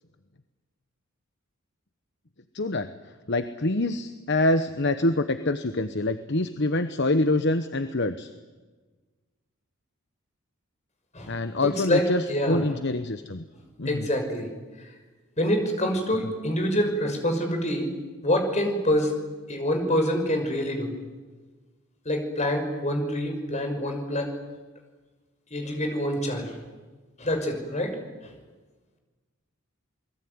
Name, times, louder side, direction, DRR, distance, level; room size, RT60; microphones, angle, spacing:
voice 1, 2.5-2.9 3.3-8.3 11.3-13.4 13.8-14.1, left 2 dB, 50° left, 10 dB, 1.1 m, -25 dB
voice 2, 11.1-12.6 13.8-14.5 15.4-17.9 18.2-19.1 19.5-20.9 22.0-24.3 25.5-26.6 27.2-28.0 28.2-28.3, equal, 30° left, 5 dB, 5.9 m, -26 dB
29.0 x 21.0 x 9.6 m, 1.3 s
head